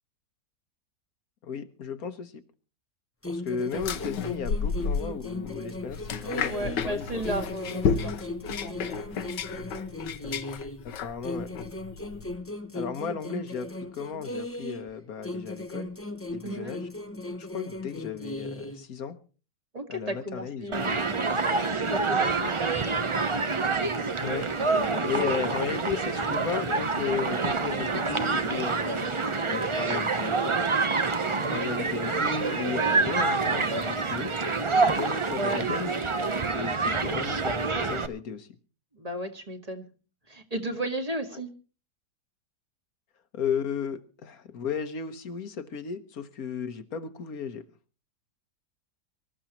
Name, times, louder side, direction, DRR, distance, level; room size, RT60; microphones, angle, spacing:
voice 1, 1.4-2.4 3.3-7.2 10.8-11.5 12.7-15.9 16.3-16.9 17.3-19.2 19.9-21.2 24.2-24.5 24.7-30.4 31.3-34.3 34.8-35.9 36.5-38.6 43.3-47.6, left 6 dB, 60° left, 11 dB, 1.4 m, -35 dB
sound 1, 3.2-6.9 7.2-10.9 11.2-14.9 15.2-18.9, left 1 dB, 15° left, 0.5 m, -37 dB
sound 2, 3.7-12.4, left 6 dB, 80° left, 1.6 m, -32 dB
voice 2, 6.5-9.1 16.4-16.8 19.7-21.2 21.9-23.1 24.7-25.4 25.7-25.9 29.9-30.0 32.0-32.1 35.4-35.6 38.9-39.8 40.3-41.5, right 1 dB, 20° right, 5 dB, 1.8 m, -35 dB
Human group actions, 20.7-38.1, right 4 dB, 50° right, 0.3 m, -27 dB
24.5 x 13.5 x 3.0 m, 0.36 s
omnidirectional pair, 1.9 m